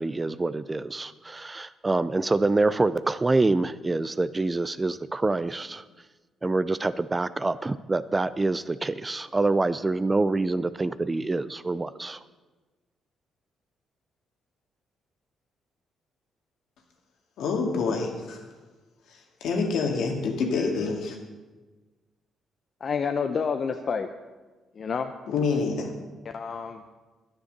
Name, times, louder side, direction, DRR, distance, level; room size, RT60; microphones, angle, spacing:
voice 1, 0.0-5.8 6.4-12.2, right 2 dB, 20° right, 15 dB, 0.5 m, -26 dB
voice 2, 17.4-18.5 19.1-21.2 25.3-25.9, left 4 dB, 80° left, 2 dB, 2.1 m, -27 dB
voice 3, 22.8-24.1 24.8-25.1 26.3-26.8, left 6 dB, 50° left, 7 dB, 0.7 m, -28 dB
10.0 x 9.8 x 6.6 m, 1.3 s
cardioid pair, 90°, 0 cm